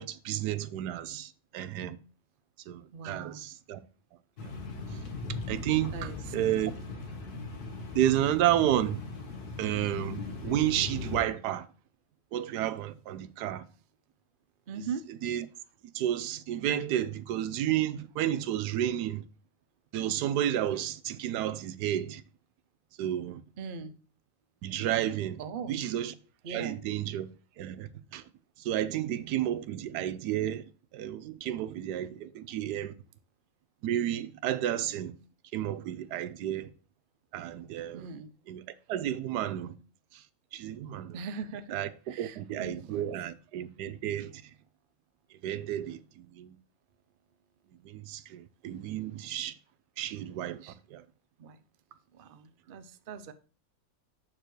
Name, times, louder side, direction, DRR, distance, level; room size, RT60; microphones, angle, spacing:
voice 1, 0.0-2.0 2.7-3.8 4.4-4.5 5.5-6.7 7.9-9.0 9.6-11.6 12.3-13.6 14.8-14.9 15.2-15.4 15.9-19.2 19.9-22.2 23.0-23.4 24.6-25.4 25.7-26.1 26.5-27.3 27.6-28.2 28.6-30.6 30.9-32.9 33.8-35.1 35.5-36.7 37.3-38.1 38.5-38.6 38.9-39.7 40.1-40.2 40.5-41.2 41.7-41.9 42.2-44.3 45.4-46.5 47.8-49.5 50.0-50.6 50.9-51.0, right 12 dB, 85° right, 1.2 m, -31 dB
voice 2, 2.9-3.4 5.9-6.2 14.7-15.1 23.6-23.9 25.4-25.8 26.4-26.8 37.9-38.3 41.1-41.8 42.1-43.1 50.6-50.8 51.4-51.6 52.1-53.3, right 5 dB, 60° right, 0.5 m, -40 dB
sound 1, 4.4-11.2, left 3 dB, 70° left, 1.9 m, -39 dB
7.6 x 6.7 x 3.1 m
omnidirectional pair, 1.7 m